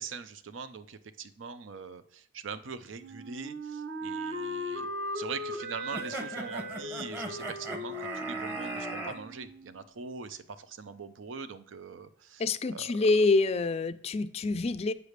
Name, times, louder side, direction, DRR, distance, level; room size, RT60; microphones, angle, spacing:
voice 1, 0.0-4.9 5.1-12.4 12.7-13.1, right 5 dB, 80° right, 12 dB, 0.6 m, -42 dB
Wind instrument woodwind instrument, 3.0-9.8, equal, 55° right, 1.1 m, -38 dB
sound 1, 5.9-9.2, right 2 dB, 10° right, 0.9 m, -38 dB
voice 2, 12.4-14.9, left 3 dB, 30° left, 13 dB, 0.3 m, -26 dB
8.1 x 3.4 x 6.5 m, 0.67 s
head